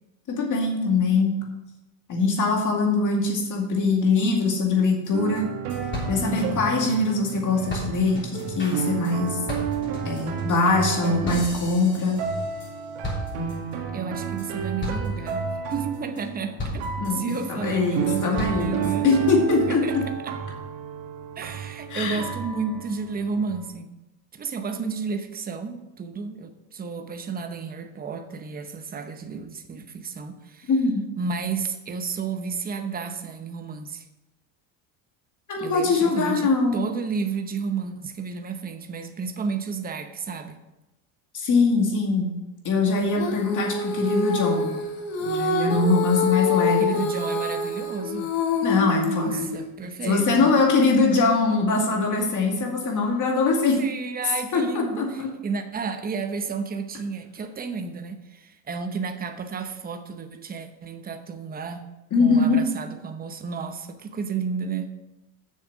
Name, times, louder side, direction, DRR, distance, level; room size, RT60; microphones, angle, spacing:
voice 1, 0.3-1.3 2.1-5.4 6.1-9.4 10.0-12.2 17.0-20.0 21.9-22.2 30.7-31.0 35.5-36.8 41.3-42.3 42.6-44.7 45.2-47.0 48.6-49.5 50.0-53.8 54.5-55.3 62.1-62.6, left 3 dB, 45° left, 1 dB, 2.3 m, -22 dB
sound 1, 5.0-5.1 5.4-5.5 5.7-7.4 7.7-12.7 13.0-13.7 14.2-14.5 14.8-15.3 15.7-16.2 16.6-17.5 17.9-18.9, left 1 dB, 25° left, 3.4 m, -35 dB
sound 2, 5.1-23.7, right 7 dB, 90° right, 1.7 m, -32 dB
voice 2, 13.9-19.1 19.7-20.4 21.4-23.9 24.3-30.7 31.2-34.0 35.6-40.6 46.8-48.3 49.1-50.6 53.8-61.9 62.2-64.9, right 5 dB, 20° right, 7 dB, 0.8 m, -32 dB
Female singing, 43.2-49.7, left 4 dB, 75° left, 1.7 m, -26 dB
7.4 x 6.6 x 6.1 m, 0.99 s
cardioid pair, 130°, 44 cm